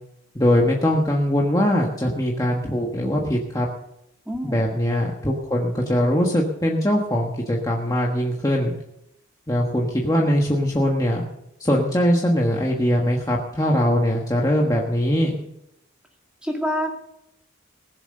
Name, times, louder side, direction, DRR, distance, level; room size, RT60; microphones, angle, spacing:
voice 1, 0.3-3.7 4.4-8.7 9.5-11.2 11.6-15.3, equal, 15° left, -2 dB, 1.4 m, -21 dB
voice 2, 4.3-4.6 16.4-16.9, equal, 5° right, 1 dB, 2.2 m, -26 dB
20.0 x 7.3 x 6.6 m, 0.80 s
head